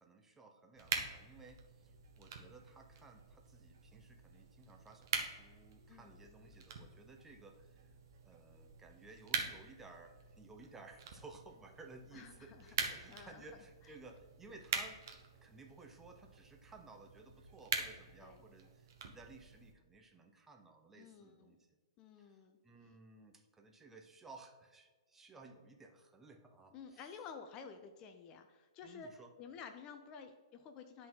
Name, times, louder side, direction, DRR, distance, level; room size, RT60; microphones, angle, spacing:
voice 1, 0.0-1.9 2.2-7.9 8.2-15.0 15.4-21.6 22.2-22.4 22.6-27.0 28.8-29.3, right 3 dB, 10° right, 3 dB, 0.8 m, -57 dB
sound 1, 0.8-19.7, right 6 dB, 50° right, 1.1 m, -45 dB
voice 2, 5.9-6.2 12.1-13.5 13.8-13.9 18.2-18.4 21.0-21.6 22.0-22.6 26.7-31.1, left 6 dB, 30° left, 6 dB, 0.5 m, -52 dB
10.5 x 4.1 x 3.8 m, 1.4 s
figure-of-eight pair, 110°, 2 cm